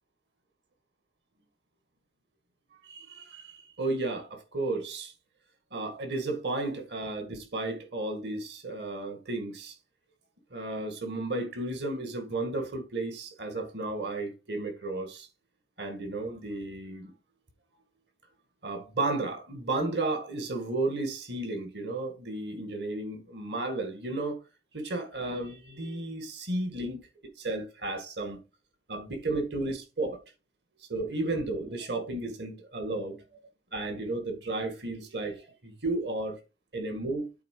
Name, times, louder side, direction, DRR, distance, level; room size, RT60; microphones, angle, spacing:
voice 1, 2.8-5.1 5.7-9.8 10.5-15.3 15.8-17.1 18.6-24.4 24.7-27.1 27.4-28.4 28.9-30.2 30.9-33.2 33.7-36.4 36.7-37.3, right 2 dB, 70° right, 2.0 m, -33 dB
8.5 x 3.8 x 4.9 m
head